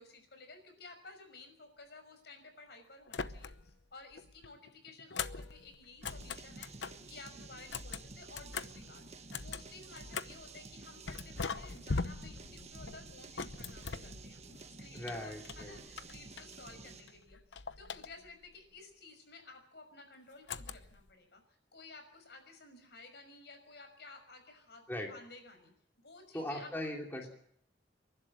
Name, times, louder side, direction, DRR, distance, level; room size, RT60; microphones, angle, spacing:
voice 1, 0.0-14.4 14.8-25.7 26.0-27.0, left 3 dB, 65° left, 6 dB, 5.9 m, -54 dB
sound 1, 3.1-3.8 4.1-7.1 7.6-10.5 11.1-14.6 15.0-16.8 17.1-18.5 20.5-21.1, left 4 dB, 90° left, 0.9 m, -42 dB
sound 2, 6.0-17.2, right 3 dB, 40° right, 1.5 m, -51 dB
voice 2, 14.9-15.8 24.9-25.1 26.3-27.3, left 1 dB, 10° left, 0 dB, 3.1 m, -39 dB
30.0 x 12.0 x 7.7 m, 0.70 s
head